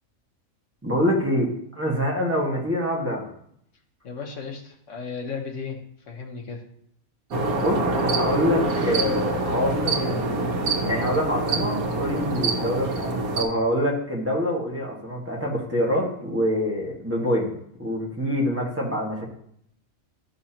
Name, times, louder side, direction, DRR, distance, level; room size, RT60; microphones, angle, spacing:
voice 1, 0.8-3.3 7.5-7.8 8.1-10.4 10.9-17.5 17.8-19.3, equal, 10° right, -3 dB, 1.5 m, -25 dB
voice 2, 4.0-5.8 6.1-6.6, left 5 dB, 60° left, 1 dB, 1.5 m, -34 dB
sound 1, 7.3-13.4, right 2 dB, 80° right, 1.5 m, -25 dB
12.0 x 5.6 x 2.9 m, 0.70 s
omnidirectional pair, 1.5 m